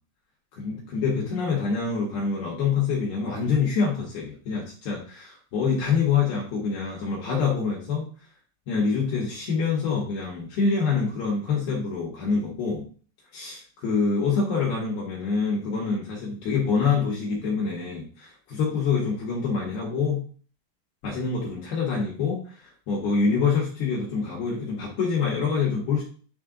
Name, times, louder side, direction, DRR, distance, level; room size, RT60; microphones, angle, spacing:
voice 1, 0.6-8.1 8.7-12.8 13.3-20.2 21.0-26.0, left 5 dB, 65° left, -4 dB, 2.7 m, -26 dB
9.9 x 3.3 x 3.7 m, 0.42 s
omnidirectional pair, 5.9 m